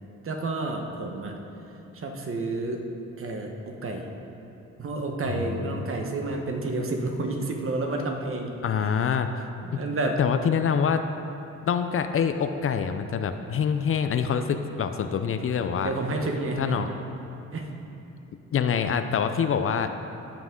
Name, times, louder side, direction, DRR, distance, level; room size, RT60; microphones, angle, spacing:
voice 1, 0.2-1.3 1.9-2.8 3.2-4.1 4.8-8.5 8.8-8.9 9.6-10.2 15.8-16.8 17.5-17.7, right 2 dB, 45° right, 3 dB, 1.2 m, -30 dB
voice 2, 5.2-5.9 8.6-9.3 9.7-9.8 10.2-11.0 11.6-15.9 16.6-16.9 18.5-19.9, left 7 dB, 45° left, 8 dB, 0.5 m, -25 dB
14.5 x 5.9 x 3.8 m, 2.9 s
cardioid pair, 90°, 30 cm